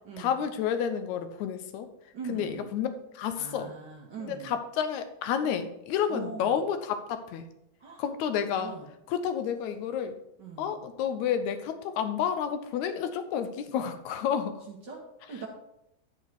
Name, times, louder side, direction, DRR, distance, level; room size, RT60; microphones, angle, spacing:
voice 1, 0.2-1.9 2.3-3.7 4.2-7.5 8.0-8.8 9.1-10.2 10.6-14.6, left 8 dB, 80° left, 9 dB, 2.1 m, -30 dB
voice 2, 2.1-2.7 3.4-4.5 6.1-6.6 7.8-8.0 8.6-8.9 10.4-10.8 14.7-15.5, right 5 dB, 60° right, -1 dB, 1.1 m, -41 dB
10.5 x 4.6 x 4.7 m, 0.83 s
omnidirectional pair, 3.3 m